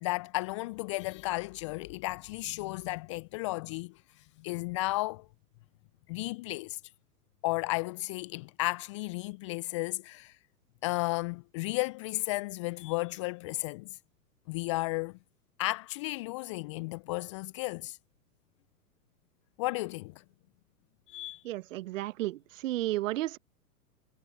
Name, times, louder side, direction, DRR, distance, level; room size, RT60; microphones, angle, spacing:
voice 1, 0.0-3.9 4.4-5.2 6.1-6.8 7.4-10.3 10.8-13.9 14.5-15.1 15.6-18.0 19.6-20.1 21.1-21.4, left 21 dB, 20° left, 0.4 m, -33 dB
voice 2, 21.4-23.4, right 16 dB, 55° right, 1.3 m, -33 dB
figure-of-eight pair, 105°, 47 cm